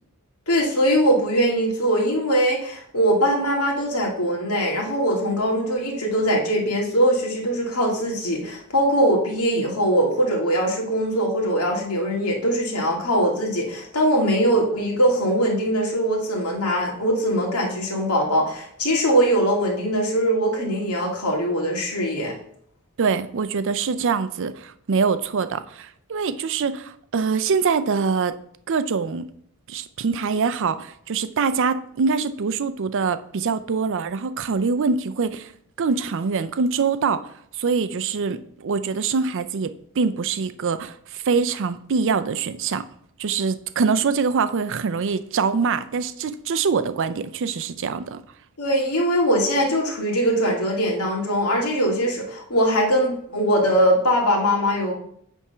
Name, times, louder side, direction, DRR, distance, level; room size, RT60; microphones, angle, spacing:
voice 1, 0.5-22.3 48.6-54.9, equal, 85° left, 2.1 m, -21 dB
voice 2, 23.0-28.3 28.7-29.3 29.7-35.5 35.8-42.9 43.2-48.2, right 5 dB, 60° right, 0.5 m, -24 dB
8.4 x 3.6 x 5.6 m
head